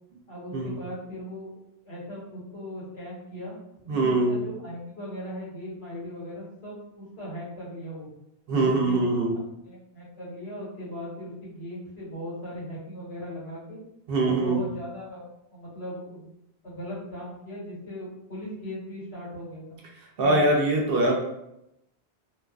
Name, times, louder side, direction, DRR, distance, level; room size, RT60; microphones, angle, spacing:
voice 1, 0.3-1.5 1.8-3.5 3.9-8.1 8.5-9.0 9.7-13.8 14.2-16.3 16.6-19.8 20.2-20.4, equal, 80° left, -8 dB, 1.5 m, -38 dB
voice 2, 3.9-4.4 8.5-9.4 14.1-14.7 20.2-21.1, right 2 dB, 65° right, 0 dB, 0.8 m, -23 dB
2.7 x 2.4 x 2.2 m, 0.83 s
omnidirectional pair, 1.1 m